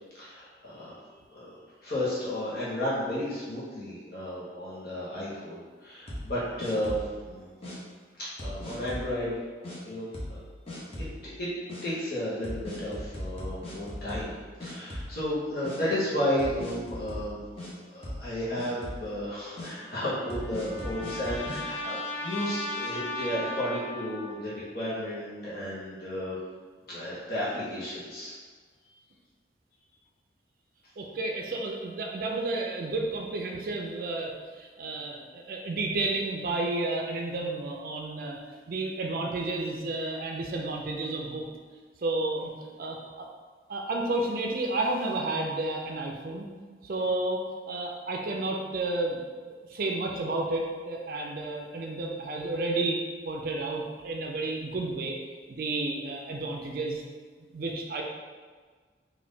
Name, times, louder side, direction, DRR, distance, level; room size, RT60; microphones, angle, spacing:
voice 1, 0.1-0.9 1.3-1.5 1.8-7.5 8.2-9.3 9.9-10.4 11.0-11.5 11.8-17.4 17.9-26.4 26.9-28.3, left 1 dB, 60° left, -9 dB, 1.0 m, -33 dB
sound 1, 6.1-7.2 7.6-7.8 8.4-9.1 9.6-9.8 10.1-10.4 10.7-11.2 11.7-11.8 12.4-14.3 14.6-15.3 15.6-15.8 16.4-17.7 18.0-18.3 18.6-19.1 19.6-19.7 20.3-21.6, left 1 dB, 35° left, 0.8 m, -38 dB
Trumpet, 19.6-24.4, left 2 dB, 90° left, 1.1 m, -37 dB
voice 2, 31.0-38.4 38.7-41.4 42.0-42.5 42.8-43.3 43.7-46.5 46.8-49.2 49.7-55.2 55.5-57.0 57.4-58.0, right 2 dB, 55° right, 0 dB, 0.4 m, -31 dB
3.6 x 2.6 x 3.9 m, 1.5 s
head